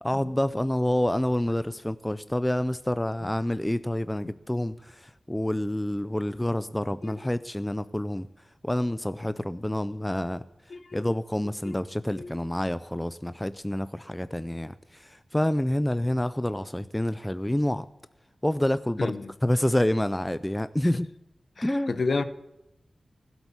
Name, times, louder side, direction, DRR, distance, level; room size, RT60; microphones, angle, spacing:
voice 1, 0.0-8.3 8.6-10.4 10.9-17.9 18.4-19.1 19.4-21.1 21.6-22.0, left 1 dB, 10° left, 0.4 m, -28 dB
voice 2, 10.7-11.0 11.6-11.8 12.2-12.3 19.0-19.3 21.6-22.2, left 3 dB, 60° left, 1.0 m, -30 dB
16.0 x 8.1 x 8.7 m
wide cardioid pair, 115°, 0 cm